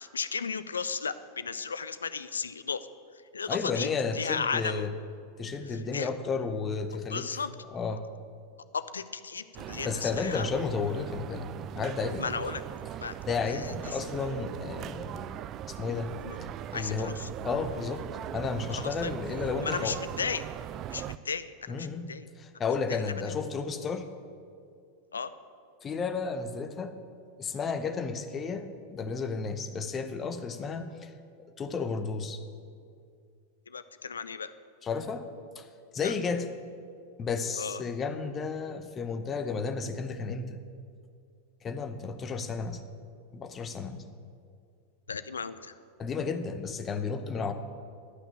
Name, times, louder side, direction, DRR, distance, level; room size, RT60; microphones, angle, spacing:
voice 1, 0.0-2.9 3.3-3.9 4.1-4.9 5.7-6.1 7.1-7.5 8.7-10.5 12.2-12.6 13.0-13.2 13.5-14.0 16.2-16.4 16.7-17.3 18.7-19.1 19.6-20.5 20.9-22.3 22.9-23.0 25.1-25.3 33.7-34.5 36.0-36.1 37.6-37.8 45.1-45.8, left 5 dB, 70° left, 13 dB, 0.5 m, -35 dB
voice 2, 3.5-4.9 5.4-7.3 7.7-8.0 9.8-11.5 11.7-12.2 13.3-15.4 15.7-16.1 16.7-17.1 17.4-18.0 18.3-20.0 21.7-22.0 22.4-24.1 25.8-26.9 27.4-31.1 31.6-32.4 34.8-35.3 35.6-35.7 35.9-36.5 37.2-40.6 41.6-42.8 43.3-44.0 46.0-47.5, left 5 dB, 25° left, 8 dB, 0.9 m, -32 dB
sound 1, 9.5-21.2, right 11 dB, 35° right, 0.3 m, -40 dB
11.5 x 6.0 x 9.1 m, 2.3 s
figure-of-eight pair, 90°, 0 cm